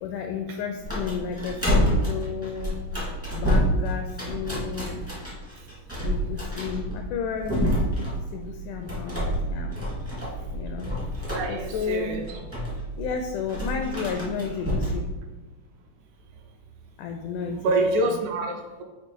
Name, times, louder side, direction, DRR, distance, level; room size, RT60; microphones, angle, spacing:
voice 1, 0.0-2.8 3.3-5.0 6.0-9.8 10.5-10.9 11.5-12.1 13.0-15.1 17.0-17.7, left 6 dB, 80° left, 4 dB, 1.8 m, -32 dB
sound 1, 0.8-15.1, equal, 15° right, 0.4 m, -28 dB
voice 2, 11.3-12.4 17.5-18.8, right 2 dB, 80° right, 3 dB, 1.8 m, -26 dB
8.1 x 2.9 x 4.5 m, 1.2 s
omnidirectional pair, 3.9 m